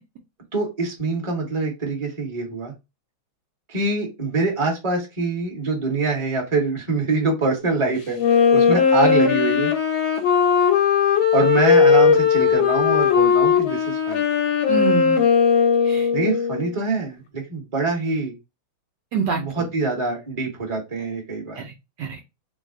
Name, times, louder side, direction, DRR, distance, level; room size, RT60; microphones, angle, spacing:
voice 1, 0.5-2.7 3.7-8.2 8.5-9.7 11.3-14.2 16.1-18.3 19.4-21.6, right 3 dB, 20° right, 1.0 m, -24 dB
Wind instrument woodwind instrument, 8.2-16.7, left 6 dB, 85° left, 1.5 m, -18 dB
voice 2, 14.7-15.2 15.8-16.1 19.1-19.7 21.6-21.7 22.0-22.2, right 6 dB, 70° right, 1.2 m, -26 dB
3.3 x 2.2 x 3.6 m
omnidirectional pair, 2.2 m